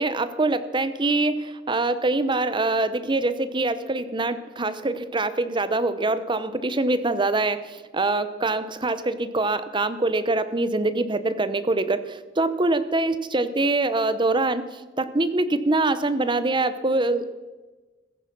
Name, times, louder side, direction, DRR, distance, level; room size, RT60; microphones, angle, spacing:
voice 1, 0.0-17.2, right 2 dB, 25° right, 12 dB, 0.8 m, -24 dB
15.5 x 13.5 x 6.0 m, 1.2 s
head